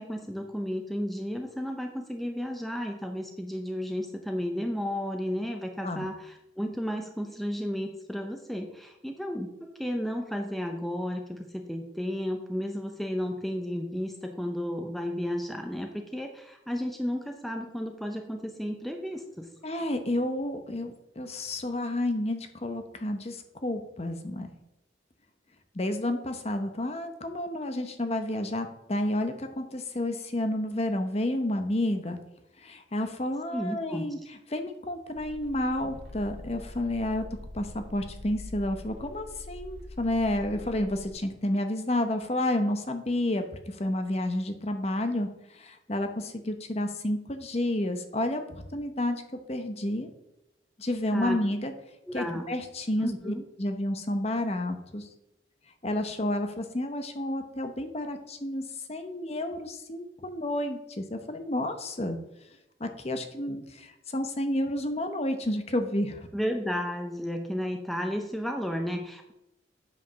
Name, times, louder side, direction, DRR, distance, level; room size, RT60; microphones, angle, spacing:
voice 1, 0.0-19.5 33.5-34.1 51.1-51.4 52.1-52.5 53.0-53.4 66.3-69.3, equal, ahead, 3 dB, 0.6 m, -33 dB
voice 2, 19.6-24.5 25.7-32.2 32.6-34.2 34.5-37.2 37.5-49.2 49.5-50.1 50.8-51.7 52.1-55.1 55.8-58.6 58.9-62.2 62.8-66.3, left 1 dB, 35° left, 7 dB, 0.9 m, -30 dB
sound 1, 35.2-41.1, left 1 dB, 90° right, 1.8 m, -44 dB
8.7 x 4.9 x 6.2 m, 0.86 s
head